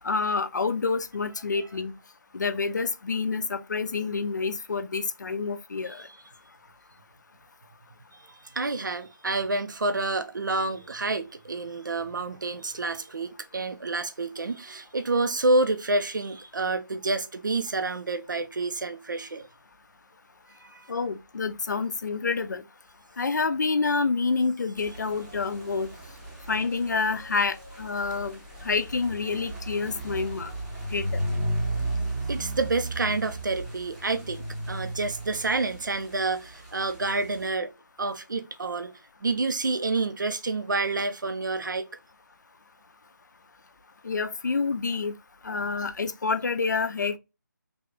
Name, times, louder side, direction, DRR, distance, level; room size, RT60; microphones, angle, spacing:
voice 1, 0.0-1.9 2.3-6.1 20.9-22.6 23.2-25.9 26.5-30.5 30.9-31.2 44.0-45.1 45.4-47.2, left 4 dB, 60° left, 0.5 m, -28 dB
voice 2, 5.9-6.2 8.3-19.5 20.6-20.9 32.3-37.7 38.0-38.9 39.2-41.9 45.5-45.7, right 3 dB, 75° right, 0.6 m, -28 dB
sound 1, 24.8-37.5, right 1 dB, 5° right, 0.7 m, -35 dB
3.4 x 2.4 x 3.6 m
figure-of-eight pair, 155°, 11 cm